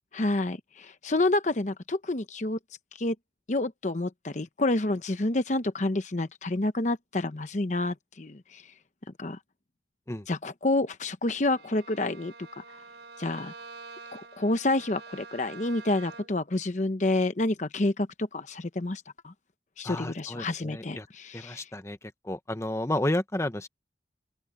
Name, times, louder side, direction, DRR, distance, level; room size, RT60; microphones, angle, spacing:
voice 1, 0.1-2.6 3.0-3.2 3.5-8.6 9.2-9.4 10.3-12.6 13.2-13.5 14.1-19.3 19.8-21.7, left 2 dB, 45° left, 0.8 m, -29 dB
Bowed string instrument, 11.5-16.5, right 4 dB, 80° right, 4.4 m, -47 dB
voice 2, 19.8-21.0 21.3-22.0 22.3-23.7, left 1 dB, 15° left, 1.0 m, -31 dB
open air
head